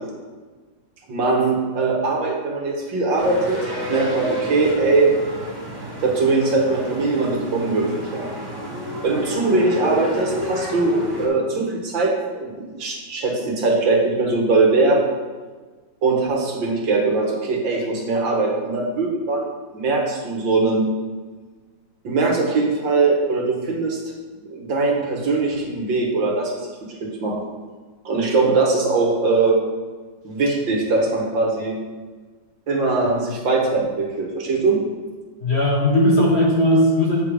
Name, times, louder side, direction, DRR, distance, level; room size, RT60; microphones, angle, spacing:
voice 1, 1.1-5.1 6.0-8.3 9.0-15.0 16.0-20.8 22.0-24.0 24.5-26.5 27.0-27.4 28.1-29.6 30.2-31.7 32.7-34.8, right 3 dB, 75° right, -1 dB, 2.1 m, -21 dB
sound 1, 3.2-11.3, equal, 10° right, 1.6 m, -30 dB
voice 2, 35.4-37.2, left 1 dB, 40° left, -3 dB, 1.3 m, -17 dB
8.2 x 5.0 x 4.9 m, 1.4 s
omnidirectional pair, 2.1 m